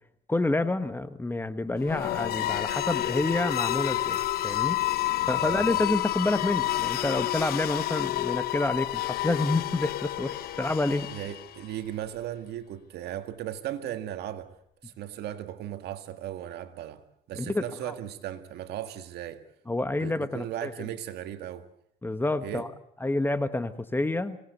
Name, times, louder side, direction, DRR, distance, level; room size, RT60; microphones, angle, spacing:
voice 1, 0.3-4.8 5.3-11.1 17.4-17.6 19.7-20.9 22.0-22.7 23.0-24.4, left 2 dB, 10° left, 1.4 m, -28 dB
sound 1, 1.8-11.7, left 14 dB, 65° left, 1.1 m, -29 dB
voice 2, 5.4-5.8 11.1-14.5 14.8-17.0 17.3-19.4 20.0-21.7 22.4-22.7, right 11 dB, 75° right, 1.9 m, -37 dB
25.0 x 18.5 x 8.2 m
cardioid pair, 110°, 17 cm